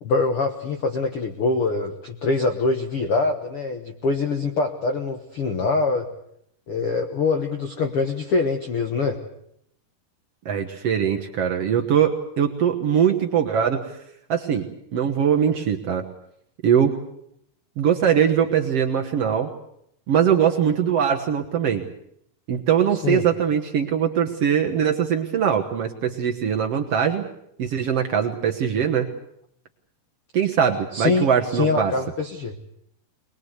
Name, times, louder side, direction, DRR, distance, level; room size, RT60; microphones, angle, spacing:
voice 1, 0.0-6.1 6.7-9.2 23.0-23.2 30.9-32.5, left 3 dB, 70° left, 6 dB, 1.3 m, -24 dB
voice 2, 10.4-14.0 14.3-16.0 16.6-17.0 17.8-19.5 20.1-21.9 22.5-27.2 27.6-29.1 30.3-31.9, right 8 dB, 65° right, 3 dB, 1.5 m, -21 dB
22.0 x 21.5 x 8.1 m, 0.74 s
omnidirectional pair, 4.6 m